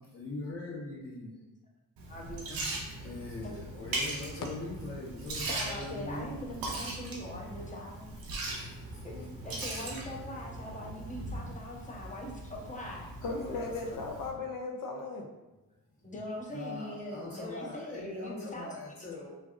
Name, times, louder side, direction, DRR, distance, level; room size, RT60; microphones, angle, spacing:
voice 1, 0.1-1.4 3.0-6.5 9.1-9.3 13.2-14.0 16.5-19.3, left 2 dB, 40° left, -11 dB, 1.1 m, -41 dB
Liquid, 2.0-14.3, right 2 dB, 85° right, 0.7 m, -40 dB
voice 2, 2.1-2.6 5.5-8.1 9.0-9.1 9.4-13.1 16.0-18.7, left 1 dB, 20° left, -2 dB, 0.7 m, -41 dB
voice 3, 13.2-15.3, left 3 dB, 70° left, 2 dB, 0.6 m, -36 dB
3.3 x 2.4 x 2.4 m, 1.1 s
cardioid pair, 65°, 34 cm